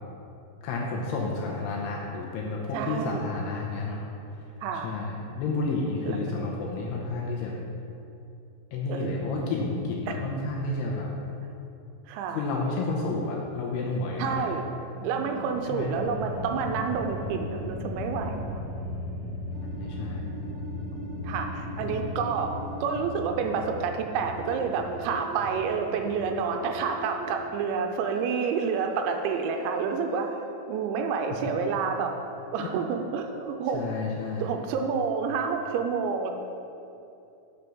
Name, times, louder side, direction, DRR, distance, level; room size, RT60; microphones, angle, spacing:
voice 1, 0.6-4.1 4.7-7.5 8.7-11.1 12.3-14.5 15.7-16.0 19.8-20.4 21.8-22.2 31.3-31.5 32.6-32.7 33.7-34.5, left 3 dB, 75° left, -2 dB, 2.7 m, -31 dB
voice 2, 2.7-3.3 4.6-4.9 6.0-6.6 8.9-9.2 10.1-10.4 12.1-12.4 14.2-14.7 15.0-18.6 21.2-30.3 30.7-32.2 32.5-33.9 34.4-36.3, right 6 dB, 80° right, 4 dB, 2.8 m, -29 dB
sound 1, 14.9-18.4 19.5-23.0 24.2-27.3 28.0-30.4, right 1 dB, 55° right, 2.6 m, -41 dB
sound 2, 15.2-27.5, left 1 dB, 40° right, 2.5 m, -38 dB
7.0 x 6.5 x 6.1 m, 2.7 s
omnidirectional pair, 5.4 m